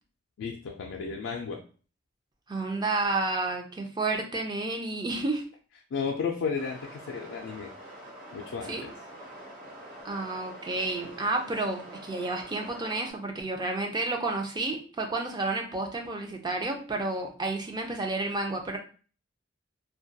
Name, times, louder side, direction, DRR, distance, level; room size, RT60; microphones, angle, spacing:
voice 1, 0.4-1.6 5.9-7.7 8.3-8.9, left 5 dB, 80° left, 0 dB, 0.3 m, -33 dB
voice 2, 2.5-5.4 8.7-8.9 10.0-18.8, right 2 dB, 20° right, 3 dB, 0.4 m, -31 dB
sound 1, 6.5-13.1, right 1 dB, 45° right, 1.2 m, -46 dB
2.2 x 2.2 x 2.6 m, 0.39 s
head